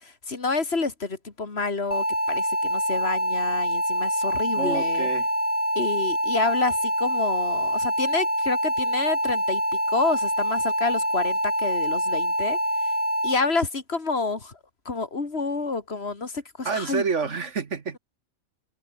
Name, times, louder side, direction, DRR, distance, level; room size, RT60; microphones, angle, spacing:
voice 1, 0.0-5.1 5.7-9.6 9.9-12.9 13.2-14.6 14.8-17.0, left 3 dB, 45° left, 2.7 m, -28 dB
sound 1, 1.9-13.3, equal, 5° right, 4.1 m, -25 dB
voice 2, 4.6-5.3 16.6-18.0, right 5 dB, 55° right, 1.7 m, -28 dB
open air
omnidirectional pair, 1.5 m